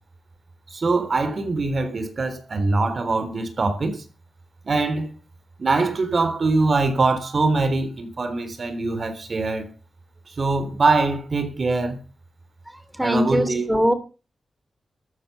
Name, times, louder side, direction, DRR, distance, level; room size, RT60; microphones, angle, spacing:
voice 1, 0.7-4.0 4.7-5.1 5.6-9.7 10.4-12.0 13.0-13.7, right 3 dB, 55° right, 3.7 m, -23 dB
voice 2, 13.0-13.9, equal, 10° right, 2.9 m, -21 dB
13.5 x 9.9 x 6.8 m
cardioid pair, 55°, 0 cm